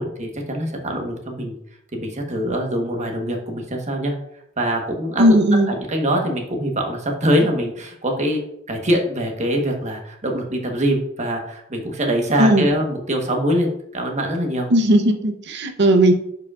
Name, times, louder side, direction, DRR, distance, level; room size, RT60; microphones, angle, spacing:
voice 1, 0.0-1.6 1.9-4.1 4.6-14.7, equal, 35° right, 2 dB, 1.2 m, -23 dB
voice 2, 5.2-5.7 12.4-12.7 14.7-16.1, right 1 dB, 60° right, 6 dB, 0.8 m, -16 dB
10.0 x 4.9 x 2.4 m, 0.75 s
head